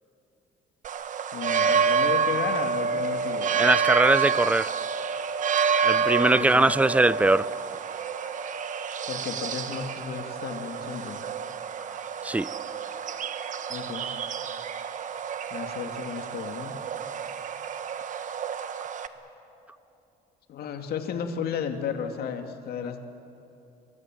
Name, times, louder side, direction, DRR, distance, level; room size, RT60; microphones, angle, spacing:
sound 1, 0.8-19.1, right 6 dB, 50° right, 1.3 m, -29 dB
voice 1, 1.3-3.7 6.3-6.7 9.1-11.2 13.7-14.1 15.5-16.8 20.5-23.0, left 7 dB, 65° left, 6 dB, 2.3 m, -33 dB
voice 2, 3.6-4.7 5.8-7.5 12.2-12.5, right 2 dB, 10° right, 18 dB, 0.5 m, -21 dB
28.5 x 23.0 x 7.7 m, 2.9 s
cardioid pair, 110°, 17 cm